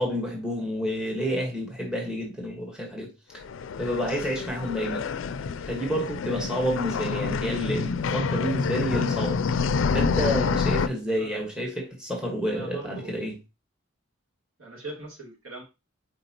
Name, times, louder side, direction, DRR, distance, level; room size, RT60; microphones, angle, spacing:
voice 1, 0.0-3.4 3.8-5.0 5.7-9.4 9.9-13.4, equal, 5° right, 1.4 m, -29 dB
sound 1, 3.4-10.9, left 5 dB, 70° left, 0.4 m, -27 dB
voice 2, 12.4-13.2 14.6-15.6, right 3 dB, 85° right, 3.1 m, -41 dB
7.9 x 4.6 x 2.9 m
head